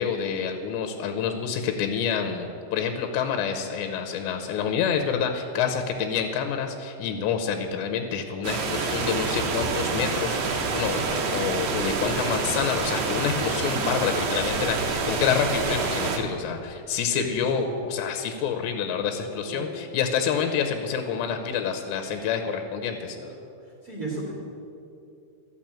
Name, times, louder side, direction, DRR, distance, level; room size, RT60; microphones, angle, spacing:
voice 1, 0.0-23.2, left 7 dB, 85° left, 6 dB, 2.9 m, -28 dB
sound 1, 8.4-16.2, right 4 dB, 85° right, 1.6 m, -27 dB
voice 2, 17.1-17.6 19.4-19.6 23.2-24.3, right 2 dB, 35° right, -5 dB, 1.6 m, -35 dB
13.5 x 6.0 x 8.6 m, 2.6 s
omnidirectional pair, 4.9 m